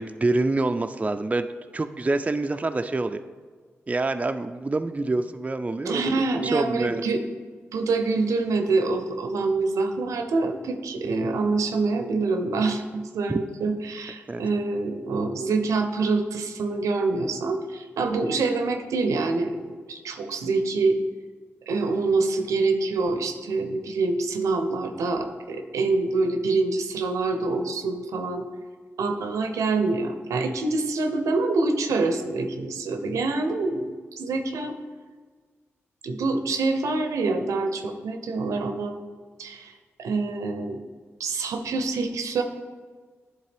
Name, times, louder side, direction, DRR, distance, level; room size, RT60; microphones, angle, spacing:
voice 1, 0.0-1.5 1.7-3.2 3.9-6.0 6.5-7.0 13.3-13.4 14.3-14.4, right 2 dB, 25° right, 8 dB, 0.4 m, -26 dB
voice 2, 5.8-7.2 7.7-21.0 21.7-28.4 29.0-34.7 36.0-39.0 39.4-40.8 41.2-42.4, right 3 dB, 85° right, 6 dB, 0.6 m, -26 dB
10.0 x 3.7 x 3.4 m, 1.5 s
supercardioid pair, 40°, 5 cm